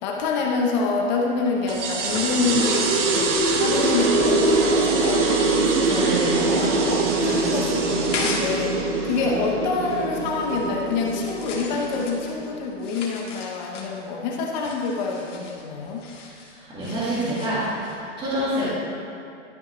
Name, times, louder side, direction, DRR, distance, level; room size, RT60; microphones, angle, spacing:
voice 1, 0.0-3.3 3.6-6.1 6.6-8.8 9.0-16.0, left 4 dB, 35° left, 0 dB, 0.9 m, -27 dB
sound 1, 1.0-8.6 8.9-18.0, left 3 dB, 85° left, 1.8 m, -39 dB
sound 2, 1.7-12.7, right 3 dB, 80° right, 1.1 m, -23 dB
sound 3, 2.1-9.0, left 2 dB, 15° left, 0.5 m, -32 dB
voice 2, 6.0-6.6 16.7-17.6 17.8-18.6, right 1 dB, 15° right, -11 dB, 1.8 m, -27 dB
12.0 x 5.7 x 3.1 m, 2.5 s
supercardioid pair, 165°, 36 cm